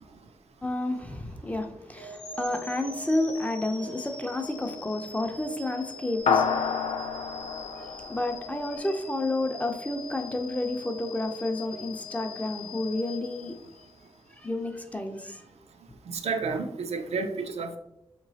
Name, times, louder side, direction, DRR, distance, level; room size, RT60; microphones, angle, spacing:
voice 1, 0.6-6.8 7.7-13.6 14.3-15.4, left 2 dB, 15° left, 0.4 m, -31 dB
sound 1, 2.0-14.1, left 1 dB, 45° left, 0.8 m, -42 dB
sound 2, 6.3-9.0, left 6 dB, 85° left, 0.4 m, -28 dB
voice 2, 16.1-17.8, right 4 dB, 80° right, 0.4 m, -31 dB
4.6 x 3.0 x 2.7 m
wide cardioid pair, 105°, 11 cm